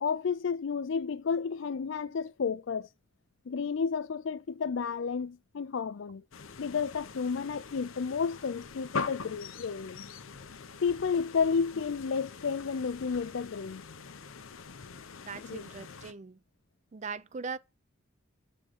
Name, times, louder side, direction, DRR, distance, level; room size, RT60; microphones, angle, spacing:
voice 1, 0.0-2.9 3.5-6.2 6.6-10.0 10.8-13.8 15.3-15.6, left 5 dB, 70° left, 0.4 m, -31 dB
sound 1, 6.3-16.1, left 5 dB, 90° left, 0.8 m, -43 dB
voice 2, 15.3-16.4 16.9-17.6, right 5 dB, 35° right, 0.4 m, -40 dB
7.8 x 3.7 x 6.5 m
head